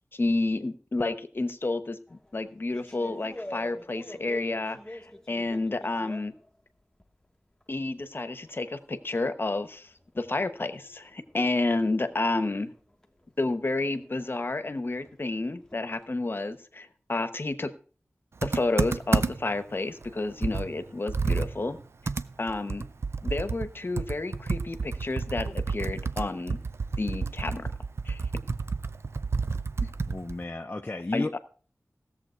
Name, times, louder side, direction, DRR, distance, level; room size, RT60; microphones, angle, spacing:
voice 1, 0.1-6.3 7.7-12.7 13.4-17.7 18.4-21.8 22.4-22.9 23.2-26.6 27.0-27.7 28.0-28.2 29.8-29.9 31.1-31.4, left 2 dB, 45° left, 11 dB, 1.0 m, -30 dB
sound 1, 2.1-7.2 7.6-16.5, left 1 dB, 10° left, 1.2 m, -49 dB
Computer keyboard, 18.4-19.6 20.0-20.1 20.4-23.7 24.0-30.4, right 4 dB, 60° right, 0.5 m, -30 dB
voice 2, 30.1-31.4, left 2 dB, 30° left, 4 dB, 0.6 m, -33 dB
16.5 x 7.4 x 4.5 m, 0.40 s
wide cardioid pair, 80°, 5 cm